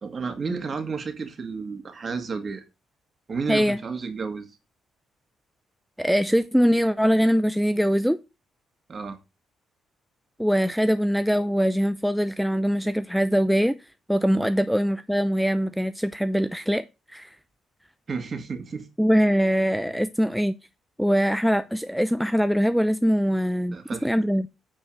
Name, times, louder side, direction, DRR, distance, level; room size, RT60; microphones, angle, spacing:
voice 1, 0.0-2.6 3.3-4.5 8.9-9.2 14.4-14.5 18.1-18.9 23.7-24.1, right 5 dB, 40° right, 2.1 m, -32 dB
voice 2, 6.0-8.2 10.4-13.8 14.1-16.8 17.1-17.3 19.0-20.6 21.0-24.5, equal, ahead, 0.5 m, -22 dB
9.1 x 4.5 x 6.4 m
cardioid pair, 90°, 0 cm